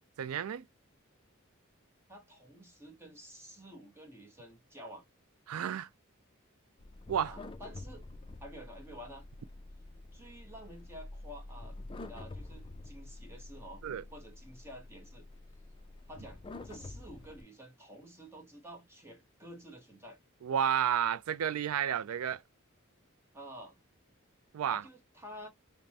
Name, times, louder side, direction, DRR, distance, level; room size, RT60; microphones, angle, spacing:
voice 1, 0.2-0.7 5.5-5.9 7.1-7.4 13.8-14.0 20.4-22.4 24.5-24.8, right 9 dB, 85° right, 0.4 m, -31 dB
voice 2, 2.1-5.0 7.2-8.1 8.4-9.2 10.1-11.7 12.1-13.8 14.1-15.2 16.1-16.4 16.6-20.2 23.3-23.8 24.7-25.5, equal, 10° right, 0.9 m, -50 dB
sound 1, 6.8-17.4, left 2 dB, 25° left, 0.4 m, -48 dB
5.1 x 2.1 x 2.7 m
head